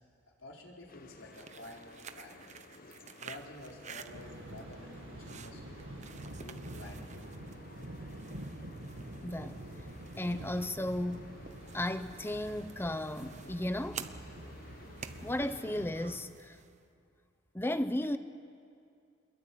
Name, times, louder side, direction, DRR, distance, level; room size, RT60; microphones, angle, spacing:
voice 1, 0.4-1.8 2.1-2.4 3.2-5.9 6.4-7.2, left 2 dB, 85° left, 4.5 m, -50 dB
sound 1, 0.9-15.9, left 2 dB, 50° left, 1.3 m, -55 dB
sound 2, 1.2-16.8, right 7 dB, 35° right, 1.0 m, -51 dB
Thunder, 4.1-16.2, right 1 dB, 90° right, 2.5 m, -47 dB
voice 2, 9.2-9.6 10.2-11.3 11.7-14.0 15.2-16.6 17.5-18.2, left 1 dB, 10° left, 0.7 m, -34 dB
26.5 x 22.0 x 9.3 m
head